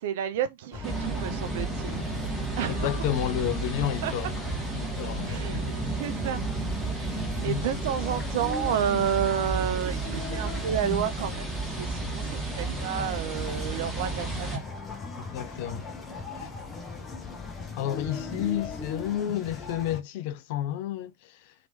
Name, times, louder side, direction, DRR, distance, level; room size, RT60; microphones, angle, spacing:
voice 1, 0.0-2.0 2.6-2.9 4.0-4.1 5.3-5.6 5.9-6.4 7.4-14.6, right 9 dB, 55° right, 0.5 m, -30 dB
sound 1, 0.7-20.0, left 4 dB, 20° left, 0.9 m, -38 dB
sound 2, 0.8-14.6, right 3 dB, 10° right, 1.3 m, -33 dB
voice 2, 2.7-4.3 4.7-5.7 7.4-7.8 15.2-15.9 16.4-16.5 17.8-21.5, left 11 dB, 50° left, 0.5 m, -31 dB
Bowed string instrument, 2.9-6.1, right 2 dB, 85° left, 0.8 m, -49 dB
3.0 x 2.9 x 2.6 m
figure-of-eight pair, 90°, 0 cm